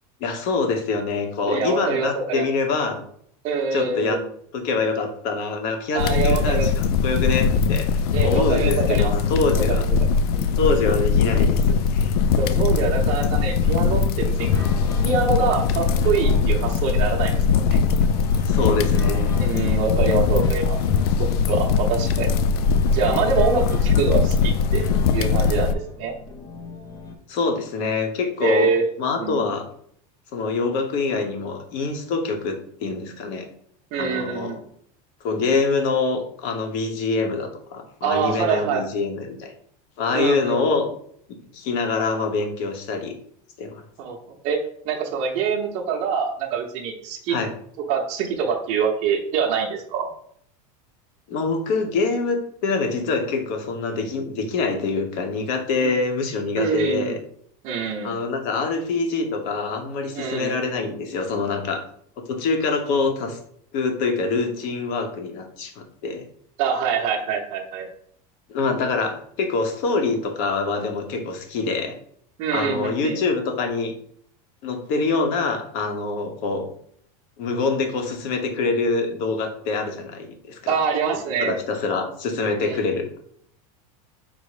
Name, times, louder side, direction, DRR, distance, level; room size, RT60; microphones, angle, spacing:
voice 1, 0.2-3.0 3.7-4.2 4.5-9.8 10.6-12.1 18.3-19.3 27.3-28.7 29.0-29.7 30.3-33.5 33.9-34.6 35.2-39.5 40.0-40.9 41.3-43.1 43.6-43.8 47.3-47.5 51.3-57.2 58.0-61.8 62.2-63.4 63.7-66.2 68.5-72.0 72.5-73.9 74.6-76.7 77.4-80.8 81.4-83.2, left 4 dB, 50° left, 5 dB, 0.9 m, -25 dB
voice 2, 1.5-2.5 3.4-4.3 5.9-6.7 8.1-9.1 9.6-9.8 10.3-10.6 12.4-14.6 15.0-17.8 19.4-20.8 21.2-22.3 22.9-25.7 26.0-26.1 28.4-28.8 29.2-29.5 33.9-34.6 38.0-38.8 40.1-40.6 44.0-44.2 44.4-44.6 44.8-47.4 47.9-50.1 55.8-55.9 56.6-57.2 57.6-58.2 60.1-60.5 66.6-67.9 71.1-71.2 72.4-73.2 80.7-81.6 82.6-82.8, right 5 dB, 35° right, -1 dB, 0.7 m, -25 dB
sound 1, 6.0-25.7, left 5 dB, 85° left, 0.4 m, -21 dB
sound 2, 14.4-27.2, left 3 dB, 20° left, 0.5 m, -38 dB
5.3 x 2.0 x 4.8 m, 0.64 s
supercardioid pair, 170°, 19 cm